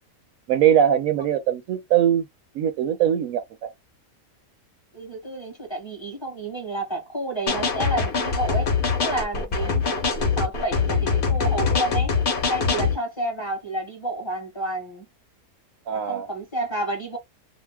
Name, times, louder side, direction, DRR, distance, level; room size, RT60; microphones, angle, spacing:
voice 1, 0.5-2.3 2.5-3.7 15.9-16.3, right 10 dB, 70° right, 0.9 m, -21 dB
voice 2, 4.9-8.7 9.0-12.1 12.5-15.1 15.9-17.2, right 2 dB, 20° left, 1.0 m, -30 dB
sound 1, 7.5-13.0, left 5 dB, 45° left, 0.8 m, -23 dB
2.7 x 2.0 x 3.3 m
omnidirectional pair, 1.5 m